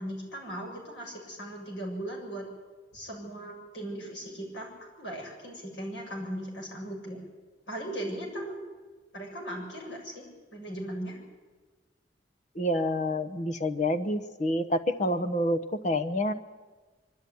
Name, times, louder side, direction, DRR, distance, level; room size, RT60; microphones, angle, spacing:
voice 1, 0.0-2.5 2.9-4.7 5.0-7.2 7.7-8.6 9.1-10.2 10.5-11.2, right 1 dB, 75° left, 0 dB, 7.3 m, -38 dB
voice 2, 12.5-16.3, left 1 dB, 40° left, 9 dB, 1.0 m, -28 dB
24.0 x 12.5 x 9.6 m, 1.3 s
head